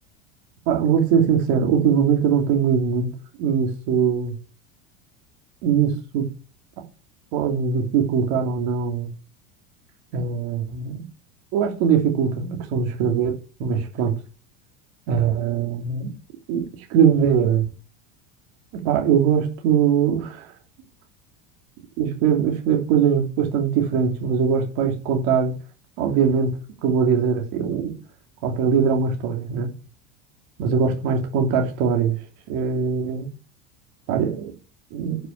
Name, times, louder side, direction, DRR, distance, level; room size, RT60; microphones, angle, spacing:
voice 1, 0.7-3.1 3.4-4.3 5.6-6.3 7.3-9.1 10.1-11.0 11.5-14.2 15.1-16.1 16.5-16.6 16.9-17.6 18.8-20.5 22.0-25.5 26.0-26.5 26.8-27.9 28.4-29.7 30.6-32.2 32.5-33.3 34.1-34.5 34.9-35.2, right 7 dB, 60° right, 2.8 m, -21 dB
11.0 x 5.7 x 7.2 m
supercardioid pair, 150°, 37 cm